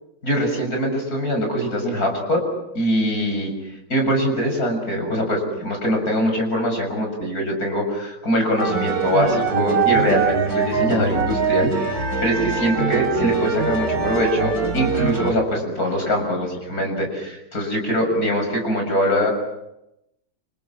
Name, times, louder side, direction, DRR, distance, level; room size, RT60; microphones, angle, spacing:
voice 1, 0.2-2.4 2.7-3.5 3.9-19.3, equal, 40° left, 3 dB, 7.5 m, -22 dB
sound 1, 8.6-15.3, right 5 dB, 40° right, 4.0 m, -23 dB
29.0 x 28.5 x 6.0 m, 0.88 s
omnidirectional pair, 2.4 m